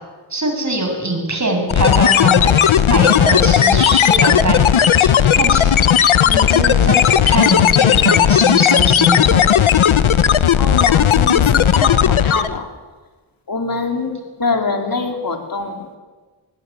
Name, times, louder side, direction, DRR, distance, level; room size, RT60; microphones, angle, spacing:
voice 1, 0.3-2.6 2.9-4.6 5.0-5.1 5.4-5.7 6.2-9.4 9.9-10.0, right 2 dB, 35° right, 4 dB, 7.3 m, -22 dB
sound 1, 1.7-12.6, left 9 dB, 80° left, 1.1 m, -14 dB
voice 2, 10.6-12.7 13.5-16.0, left 3 dB, 45° left, 3 dB, 4.2 m, -24 dB
21.0 x 19.5 x 8.8 m, 1.3 s
cardioid pair, 60°, 48 cm